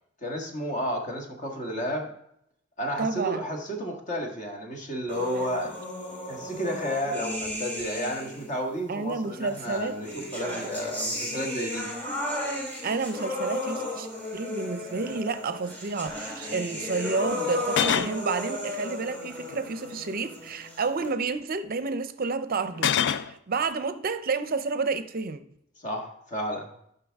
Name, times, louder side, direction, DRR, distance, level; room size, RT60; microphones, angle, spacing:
voice 1, 0.2-2.1 2.8-5.8 6.3-11.9 25.8-26.7, equal, 40° left, 1.6 m, -32 dB
voice 2, 3.0-3.4 8.9-9.9 12.8-25.4, right 4 dB, 50° right, 0.6 m, -30 dB
sound 1, 5.1-8.5 9.5-21.1, left 1 dB, 10° left, 2.3 m, -35 dB
sound 2, 14.6-14.7 15.0-15.2 17.6-18.2 19.4-19.9 22.7-23.3, left 8 dB, 60° left, 0.4 m, -26 dB
11.5 x 5.8 x 3.5 m
head